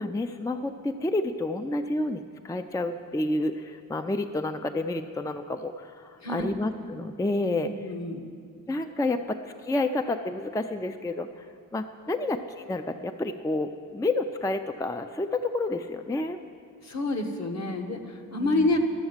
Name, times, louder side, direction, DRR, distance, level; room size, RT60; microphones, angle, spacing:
voice 1, 0.0-7.9 8.7-11.5 11.7-16.4 18.4-18.7, left 2 dB, 10° left, 8 dB, 0.4 m, -30 dB
voice 2, 6.2-6.5 7.6-8.3 16.8-18.8, left 2 dB, 50° left, 4 dB, 1.4 m, -28 dB
12.5 x 7.1 x 7.4 m, 2.2 s
cardioid pair, 70°, 35 cm